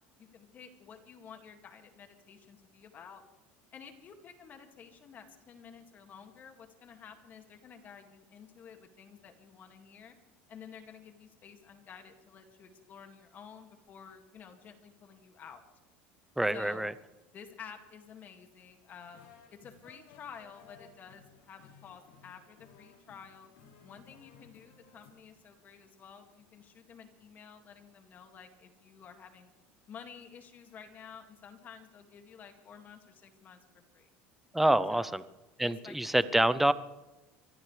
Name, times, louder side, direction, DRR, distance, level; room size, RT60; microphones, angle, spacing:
voice 1, 0.2-3.2 3.7-10.2 10.5-15.6 16.5-16.9 17.3-23.5 23.8-29.5 29.9-33.6 33.9-34.1 34.9-35.2 35.6-36.4, left 7 dB, 35° left, 5 dB, 2.2 m, -51 dB
voice 2, 16.4-16.9 34.5-35.2 35.6-36.7, right 1 dB, 5° right, 15 dB, 0.6 m, -26 dB
sound 1, 19.0-25.1, left 6 dB, 80° left, 4.8 m, -58 dB
24.0 x 16.5 x 3.3 m, 1.1 s
supercardioid pair, 135°, 5 cm